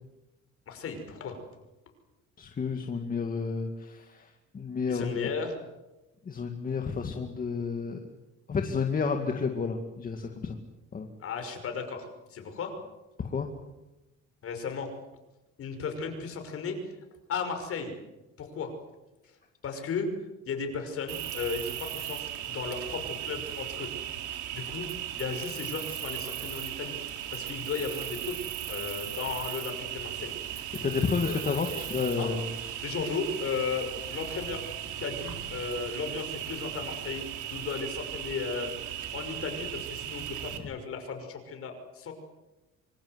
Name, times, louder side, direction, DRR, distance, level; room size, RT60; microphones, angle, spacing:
voice 1, 0.7-1.4 4.9-5.5 11.2-12.0 12.3-12.7 14.4-14.9 15.6-16.8 17.3-17.9 18.4-18.7 19.6-20.1 20.5-23.9 24.5-24.9 25.2-27.0 27.3-28.4 28.7-30.6 31.2-31.4 31.7-31.8 32.2-32.3 32.8-34.6 35.0-37.2 37.5-38.7 39.1-42.1, left 5 dB, 50° left, 6 dB, 5.9 m, -35 dB
voice 2, 2.4-5.3 6.3-8.0 8.5-10.6 10.9-11.1 13.2-13.5 30.8-32.9, left 5 dB, 30° left, 4 dB, 2.1 m, -31 dB
Cricket, 21.1-40.6, right 11 dB, 85° right, 3.3 m, -37 dB
26.0 x 25.0 x 8.1 m, 1.0 s
cardioid pair, 160°, 30 cm